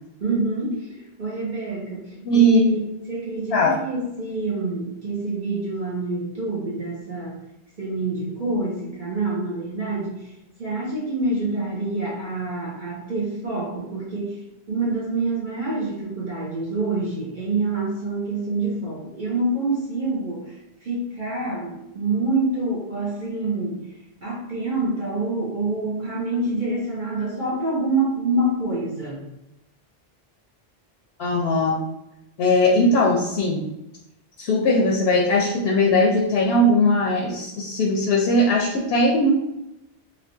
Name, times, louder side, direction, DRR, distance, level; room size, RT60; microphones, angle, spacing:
voice 1, 0.2-2.8 3.1-7.4 7.8-10.3 10.6-14.3 14.7-20.5 20.8-23.8 24.2-29.2, right 2 dB, 50° right, -6 dB, 0.9 m, -26 dB
voice 2, 2.2-2.6 3.5-3.8 31.2-31.8 32.4-33.6 34.4-39.3, left 1 dB, 75° left, -2 dB, 0.8 m, -19 dB
3.2 x 3.0 x 2.6 m, 0.90 s
omnidirectional pair, 1.1 m